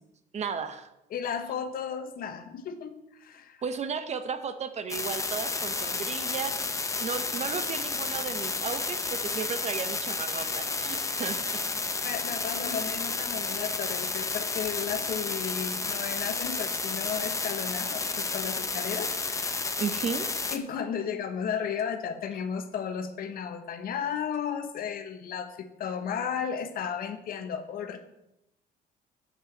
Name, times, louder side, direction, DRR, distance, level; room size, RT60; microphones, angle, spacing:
voice 1, 0.3-0.9 3.6-6.7 7.0-11.6 19.8-20.3, right 6 dB, 40° right, 10 dB, 1.0 m, -34 dB
voice 2, 1.1-3.6 12.0-19.8 20.5-28.0, left 7 dB, 60° left, 8 dB, 1.1 m, -34 dB
sound 1, 4.9-20.6, left 3 dB, 20° left, 0.8 m, -31 dB
7.9 x 6.2 x 7.3 m, 0.87 s
cardioid pair, 110°, 17 cm